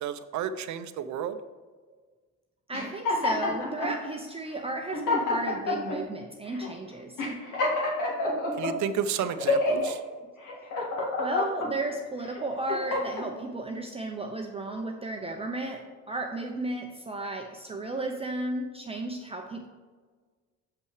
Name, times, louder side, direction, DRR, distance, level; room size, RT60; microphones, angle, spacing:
voice 1, 0.0-1.4 8.6-10.0, right 8 dB, 65° right, 11 dB, 0.6 m, -31 dB
sound 1, 2.7-3.9 4.6-4.7 4.9-6.0 6.5-6.7 7.2-8.7 9.2-9.9 10.4-11.7 12.3-13.3, left 2 dB, 75° left, 2.0 m, -28 dB
voice 2, 2.7-7.2 11.2-19.7, right 2 dB, 20° right, 2 dB, 0.6 m, -34 dB
6.9 x 5.6 x 4.8 m, 1.4 s
cardioid pair, 140°, 31 cm